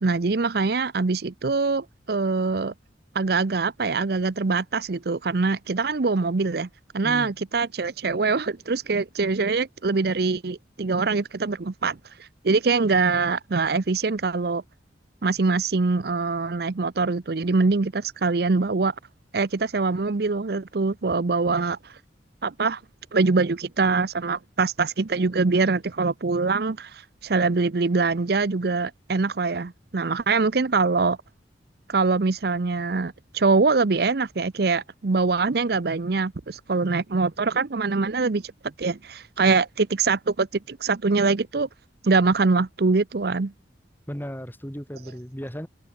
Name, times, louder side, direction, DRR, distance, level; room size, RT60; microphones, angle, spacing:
voice 1, 0.0-2.7 3.1-6.7 6.9-12.0 12.4-14.6 15.2-18.9 19.3-21.9 22.4-22.8 23.1-31.2 31.9-38.5 38.8-41.7 42.0-43.5, right 4 dB, 60° right, 0.7 m, -23 dB
voice 2, 44.1-45.7, equal, 10° left, 6.7 m, -35 dB
head